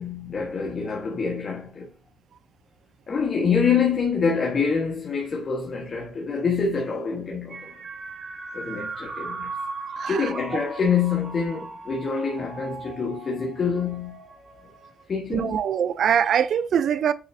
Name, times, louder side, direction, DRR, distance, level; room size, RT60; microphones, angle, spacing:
voice 1, 0.0-1.9 3.1-7.7 8.5-9.6 10.1-14.2 15.1-15.6, left 5 dB, 45° left, 1.4 m, -26 dB
sound 1, 7.5-15.0, right 3 dB, 45° right, 2.9 m, -38 dB
voice 2, 10.0-10.3 15.3-17.1, right 8 dB, 65° right, 0.5 m, -23 dB
9.1 x 4.0 x 2.7 m
cardioid pair, 90°, 0 cm